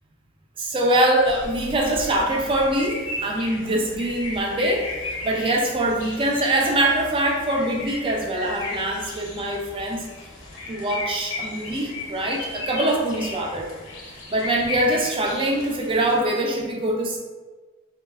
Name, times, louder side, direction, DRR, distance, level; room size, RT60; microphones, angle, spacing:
voice 1, 0.6-10.1 10.7-13.7 14.3-17.2, right 1 dB, 25° right, 0 dB, 0.4 m, -23 dB
sound 1, 1.3-16.2, left 2 dB, 80° left, 0.6 m, -35 dB
3.1 x 2.0 x 2.2 m, 1.3 s
head